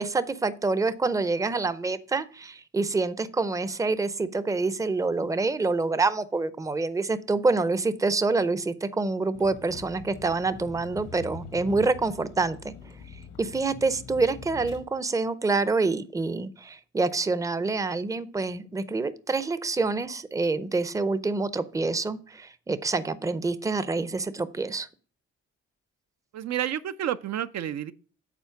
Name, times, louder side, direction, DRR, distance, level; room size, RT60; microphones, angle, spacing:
voice 1, 0.0-12.7 13.4-24.9, right 3 dB, 10° right, 0.6 m, -27 dB
Vehicle, 9.3-14.8, left 4 dB, 80° left, 1.4 m, -44 dB
voice 2, 26.3-27.9, right 11 dB, 60° right, 0.5 m, -30 dB
8.3 x 4.3 x 5.8 m
cardioid pair, 90°, 30 cm